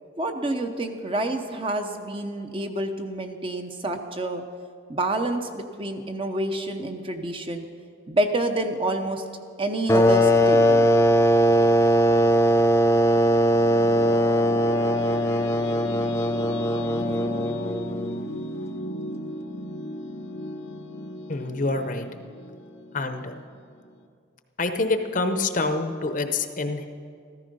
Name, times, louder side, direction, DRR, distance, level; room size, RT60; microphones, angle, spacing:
voice 1, 0.2-4.4 4.9-7.6 8.1-9.2 9.6-10.9, right 1 dB, 25° right, 6 dB, 0.8 m, -28 dB
sound 1, 9.9-18.3, equal, 15° left, 0.4 m, -20 dB
sound 2, 13.4-24.0, left 1 dB, 70° left, 0.9 m, -36 dB
voice 2, 21.3-22.1 22.9-23.4 24.6-26.9, left 3 dB, 40° left, 8 dB, 0.8 m, -27 dB
14.0 x 14.0 x 5.4 m, 2.3 s
head